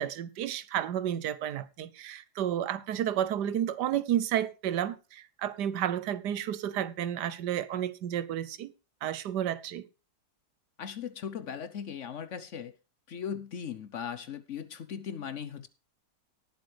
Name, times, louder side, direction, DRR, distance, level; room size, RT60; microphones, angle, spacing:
voice 1, 0.0-8.7 9.0-9.8, right 10 dB, 90° right, 1.4 m, -31 dB
voice 2, 10.8-12.7 13.1-15.7, left 8 dB, 55° left, 0.9 m, -38 dB
18.5 x 7.7 x 3.3 m
omnidirectional pair, 1.7 m